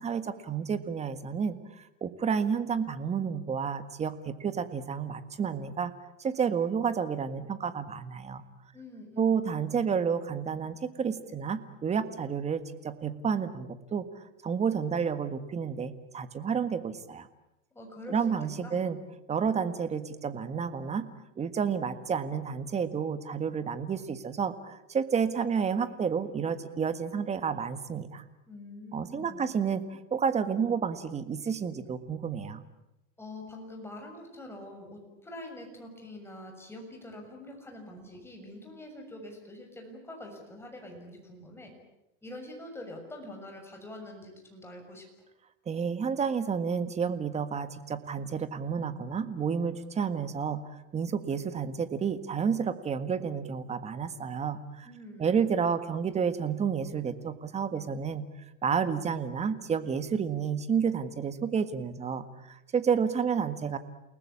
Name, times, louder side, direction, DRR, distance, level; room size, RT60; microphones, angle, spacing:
voice 1, 0.0-5.9 6.2-8.4 9.2-14.0 14.4-17.3 18.1-19.0 19.3-21.1 21.4-28.2 28.9-32.6 45.7-50.6 50.9-54.9 55.2-58.2 58.6-63.8, right 6 dB, 20° right, 11 dB, 1.6 m, -30 dB
voice 2, 8.7-9.5 17.7-18.2 18.6-18.8 28.5-29.5 33.2-41.7 42.2-45.0 54.8-55.4, left 1 dB, 5° left, 2 dB, 6.7 m, -45 dB
29.0 x 19.5 x 8.6 m, 0.91 s
supercardioid pair, 135°, 37 cm